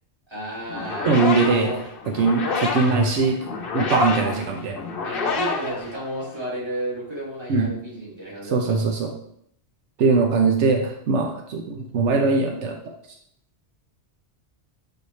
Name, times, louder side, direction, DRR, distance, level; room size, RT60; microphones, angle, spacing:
voice 1, 0.3-1.8 4.1-4.4 5.0-8.8, right 1 dB, 25° right, -7 dB, 2.5 m, -32 dB
sound 1, 0.7-6.5, left 4 dB, 55° left, 0.9 m, -28 dB
voice 2, 1.1-1.7 2.2-3.4 3.7-4.8 7.5-7.7 8.5-9.1 10.0-12.8, right 4 dB, 85° right, 2 dB, 1.1 m, -21 dB
6.8 x 4.7 x 3.1 m, 0.69 s
omnidirectional pair, 1.2 m